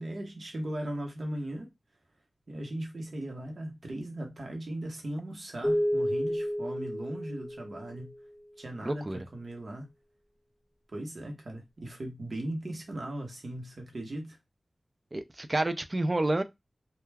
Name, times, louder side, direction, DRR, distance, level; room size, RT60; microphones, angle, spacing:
voice 1, 0.0-1.7 2.5-8.1 8.6-9.9 10.9-14.4, right 1 dB, 70° right, 0.9 m, -38 dB
sound 1, 5.6-8.2, equal, 5° left, 0.7 m, -31 dB
voice 2, 8.8-9.2 15.1-16.4, right 2 dB, 40° right, 0.4 m, -29 dB
2.3 x 2.2 x 3.2 m
wide cardioid pair, 55°, 0 cm